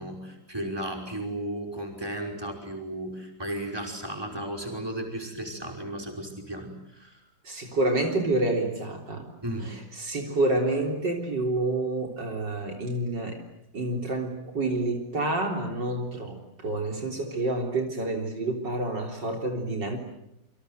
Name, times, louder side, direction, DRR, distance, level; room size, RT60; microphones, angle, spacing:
voice 1, 0.0-7.2 9.4-9.7, right 1 dB, 10° right, 2 dB, 5.5 m, -35 dB
voice 2, 7.4-9.3 9.6-13.4 13.7-20.0, right 2 dB, 65° right, 2 dB, 4.3 m, -28 dB
28.0 x 25.0 x 8.1 m, 0.80 s
omnidirectional pair, 2.0 m